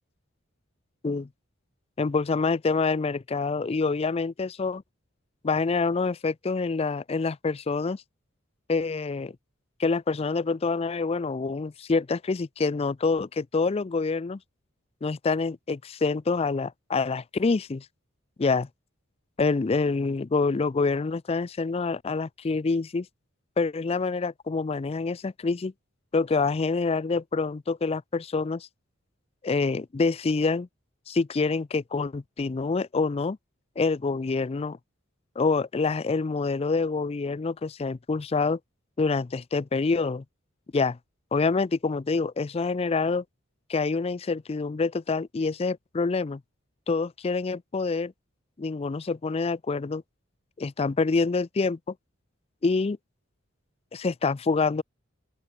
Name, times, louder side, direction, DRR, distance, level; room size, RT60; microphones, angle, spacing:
voice 1, 2.0-4.8 5.4-8.0 8.7-9.3 9.8-14.4 15.0-17.9 18.4-18.7 19.4-23.1 23.6-25.7 26.1-28.7 29.4-30.7 31.1-33.4 33.8-34.8 35.4-38.6 39.0-40.2 40.7-41.0 41.3-43.2 43.7-46.4 46.9-48.1 48.6-50.0 50.6-51.9 52.6-53.0 53.9-54.8, left 4 dB, 30° left, 0.4 m, -26 dB
open air
head